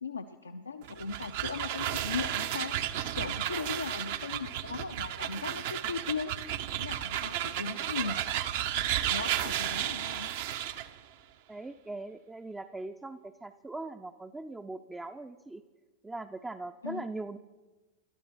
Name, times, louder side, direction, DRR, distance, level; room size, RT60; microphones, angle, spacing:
voice 1, 0.0-2.7 3.1-6.3 6.8-8.2 9.1-10.3 16.8-17.0, left 5 dB, 75° left, 7 dB, 0.5 m, -38 dB
sound 1, 0.8-10.9, right 11 dB, 50° right, 0.7 m, -33 dB
voice 2, 11.5-15.6 16.0-17.4, right 2 dB, 10° right, 7 dB, 0.5 m, -40 dB
28.0 x 13.0 x 3.1 m, 1.2 s
figure-of-eight pair, 90°, 0 cm